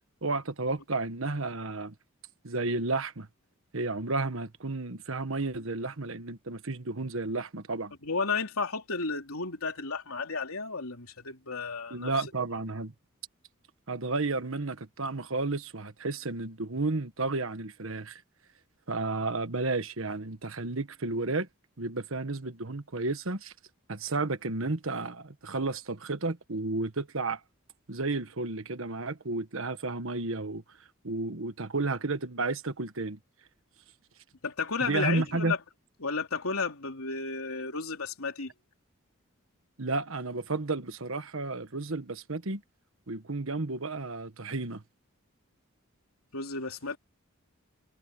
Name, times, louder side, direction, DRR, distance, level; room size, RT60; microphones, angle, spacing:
voice 1, 0.2-1.9 2.4-3.3 3.7-7.9 11.9-12.9 13.9-18.2 18.9-21.5 21.8-23.5 23.9-27.4 27.9-30.6 31.0-33.2 34.8-35.5 39.8-42.6 43.1-44.8, right 3 dB, 70° right, 1.4 m, -32 dB
voice 2, 8.0-12.1 34.4-35.6 36.0-38.5 46.3-47.0, left 4 dB, 90° left, 3.4 m, -32 dB
head